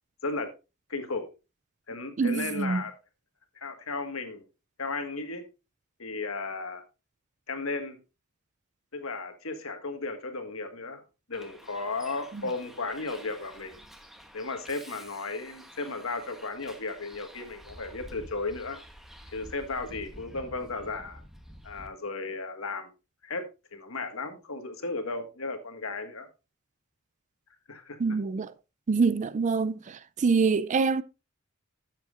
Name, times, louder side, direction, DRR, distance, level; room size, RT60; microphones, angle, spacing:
voice 1, 0.9-1.3 1.9-2.9 3.5-4.4 4.8-5.4 6.0-6.8 7.5-8.0 8.9-11.0 11.3-13.8 14.3-18.8 19.3-21.2 21.6-22.9 23.2-23.4 23.7-26.3 27.7-28.0, left 3 dB, 70° left, 1.6 m, -35 dB
voice 2, 2.2-2.8 12.3-12.5 28.0-28.5 28.9-31.0, right 4 dB, 35° right, 0.4 m, -25 dB
Bus, 11.3-21.9, equal, ahead, 1.1 m, -49 dB
12.5 x 7.6 x 2.5 m
head